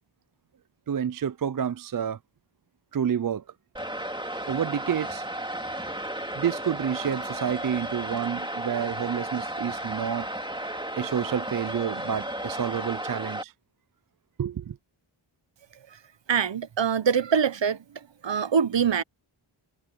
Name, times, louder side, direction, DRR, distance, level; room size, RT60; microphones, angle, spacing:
voice 1, 0.9-2.2 2.9-3.4 4.5-5.3 6.4-10.3 11.0-13.5 14.4-14.8, right 8 dB, 45° right, 0.5 m, -29 dB
sound 1, 3.7-13.4, right 1 dB, 10° right, 2.3 m, -34 dB
voice 2, 16.3-17.8 18.2-19.0, right 7 dB, 60° right, 0.9 m, -23 dB
wide cardioid pair, 75°, 50 cm